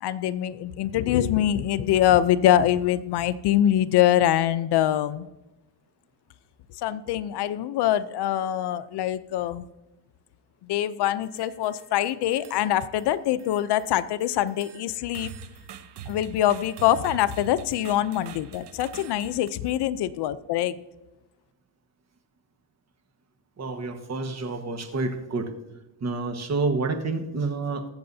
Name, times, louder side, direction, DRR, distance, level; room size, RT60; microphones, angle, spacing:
voice 1, 0.0-5.3 6.8-9.6 10.6-15.3 16.1-20.7, left 12 dB, 70° left, 15 dB, 0.6 m, -24 dB
sound 1, 11.1-11.9 12.3-13.1 13.4-19.5, right 7 dB, 70° right, 1.0 m, -44 dB
voice 2, 23.6-25.5 26.0-27.8, right 3 dB, 40° right, 7 dB, 1.4 m, -28 dB
22.0 x 7.7 x 2.7 m, 1.0 s
cardioid pair, 115°, 41 cm